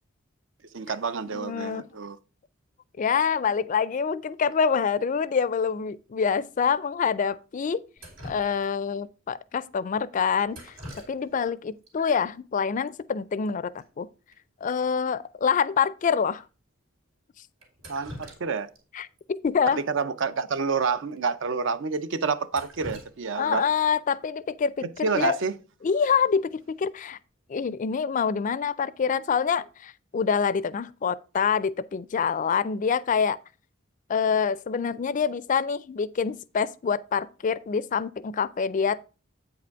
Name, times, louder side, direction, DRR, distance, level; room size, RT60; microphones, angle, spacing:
voice 1, 0.7-2.2 17.9-18.7 19.7-23.6 24.8-25.5, right 5 dB, 65° right, 0.5 m, -28 dB
voice 2, 1.3-1.9 3.0-7.8 8.2-10.7 11.1-14.1 14.6-16.4 18.9-19.8 23.4-25.4 25.8-27.2 27.5-33.4 34.1-39.0, left 6 dB, 40° left, 0.3 m, -26 dB
Drip, 8.0-9.0 10.5-11.5 11.8-11.9 12.9-13.0 13.2-13.5 13.8-13.9 14.3-14.4 14.9-15.0 15.5-15.6 16.3-16.4 17.6-18.8 19.2-19.3 20.6-20.7 21.1-21.2 21.7-21.8 22.2-23.9 25.9-26.2 26.6-27.0, equal, 80° right, 2.8 m, -45 dB
8.4 x 4.9 x 4.6 m
head